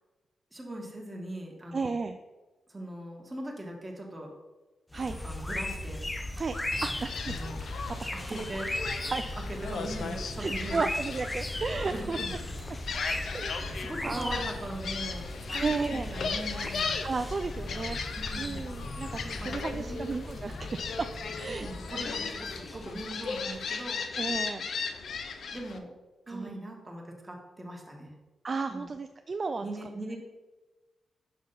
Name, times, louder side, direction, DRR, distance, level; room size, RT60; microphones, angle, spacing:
voice 1, 0.5-1.9 2.7-4.3 5.1-6.1 7.2-7.6 8.1-8.7 9.6-10.8 11.8-12.3 13.1-13.4 13.7-16.9 18.2-18.6 19.4-20.1 21.5-24.0 25.5-25.9 26.3-28.1 28.7-28.9 29.6-30.2, right 1 dB, 15° right, 0 dB, 1.5 m, -40 dB
voice 2, 1.7-2.2 4.9-5.2 6.4-7.4 8.0-8.4 9.1-9.2 10.4-12.2 13.3-14.4 15.6-16.1 17.0-18.0 18.4-21.1 21.3-21.7 24.1-24.7 26.3-26.6 28.4-29.6, right 4 dB, 40° right, 7 dB, 0.3 m, -34 dB
sound 1, 4.9-24.3, left 1 dB, 15° left, 0.5 m, -38 dB
Gull seagull, 6.7-25.8, left 5 dB, 70° left, 0.6 m, -37 dB
6.6 x 3.5 x 5.5 m, 1.1 s
cardioid pair, 85°, 0 cm